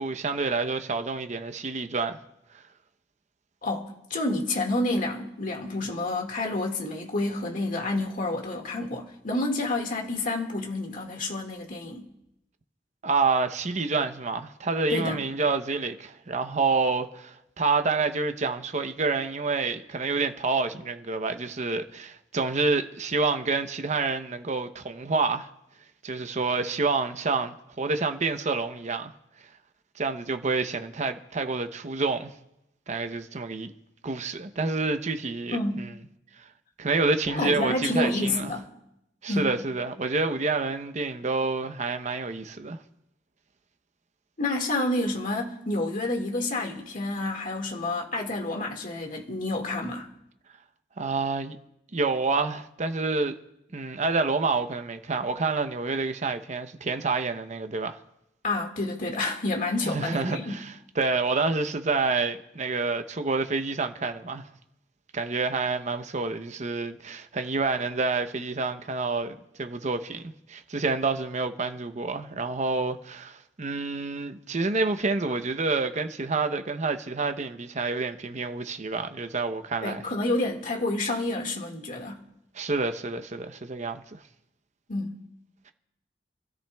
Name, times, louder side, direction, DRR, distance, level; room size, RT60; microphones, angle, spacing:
voice 1, 0.0-2.2 13.0-25.5 26.0-29.1 30.0-32.3 32.9-33.7 34.0-35.9 36.4-36.5 36.8-38.5 39.2-42.8 51.0-51.6 51.9-53.4 53.7-58.0 59.8-64.5 65.1-80.0 82.5-84.2, right 3 dB, 40° right, 0.8 m, -28 dB
voice 2, 3.6-12.1 14.9-15.2 35.5-35.9 37.3-38.7 39.3-39.5 44.4-50.1 58.4-60.6 79.8-82.2 84.9-85.2, left 2 dB, 45° left, 1.9 m, -29 dB
28.5 x 13.5 x 2.3 m
head